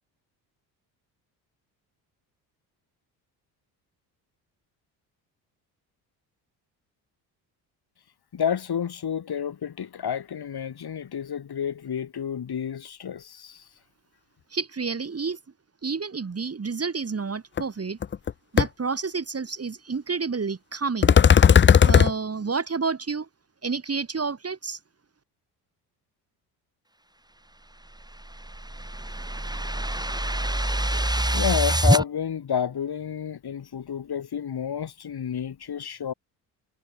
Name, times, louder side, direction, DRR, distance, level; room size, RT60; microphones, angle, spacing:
voice 1, 8.3-13.7 31.3-36.1, left 8 dB, 50° left, 6.1 m, -30 dB
voice 2, 14.5-15.4 15.8-18.0 18.5-21.2 21.8-23.3 23.6-24.8, right 5 dB, 30° right, 3.1 m, -29 dB
sound 1, 17.6-17.7 18.0-18.3 18.6-18.7 21.0-22.1, left 7 dB, 25° left, 0.6 m, -15 dB
sound 2, 28.0-32.0, right 1 dB, 10° right, 7.3 m, -25 dB
hypercardioid pair, 55°, 50 cm